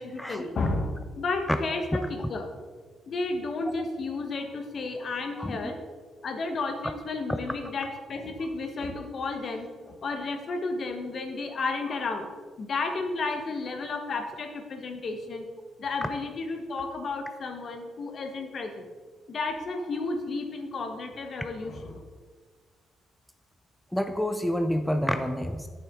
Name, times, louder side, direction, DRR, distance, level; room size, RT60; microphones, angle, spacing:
voice 1, 0.0-2.5 3.1-5.8 6.2-12.3 12.6-15.4 15.8-18.9 19.3-22.0, left 3 dB, 50° left, 5 dB, 1.1 m, -32 dB
voice 2, 23.9-25.7, equal, 5° left, 7 dB, 0.4 m, -28 dB
8.7 x 6.9 x 3.6 m, 1.5 s
cardioid pair, 90°, 0 cm